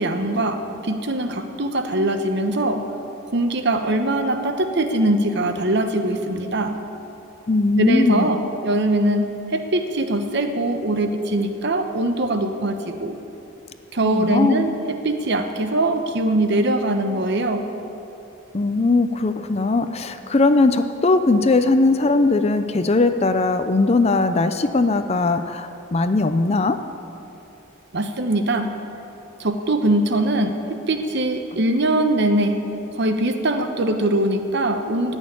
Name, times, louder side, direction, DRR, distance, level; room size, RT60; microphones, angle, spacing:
voice 1, 0.0-2.8 3.3-6.8 7.8-9.2 9.5-13.2 13.9-17.6 27.9-28.7 29.4-30.5 30.9-32.6 33.0-35.2, right 1 dB, 60° right, 6 dB, 1.0 m, -22 dB
voice 2, 7.5-8.3 14.0-14.7 18.5-26.8, left 3 dB, 30° left, 9 dB, 0.5 m, -19 dB
16.5 x 6.4 x 9.9 m, 2.8 s
head